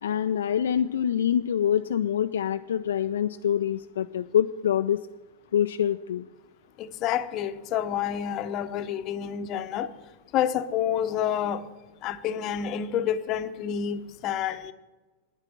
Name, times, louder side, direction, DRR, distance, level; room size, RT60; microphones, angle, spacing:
voice 1, 0.0-5.0 5.5-6.3 9.8-9.9, left 9 dB, 65° left, 9 dB, 0.3 m, -25 dB
voice 2, 6.8-9.9 10.3-11.7 12.0-14.7, left 9 dB, 35° left, 12 dB, 0.7 m, -28 dB
9.8 x 9.2 x 7.7 m, 1.2 s
figure-of-eight pair, 90°, 0 cm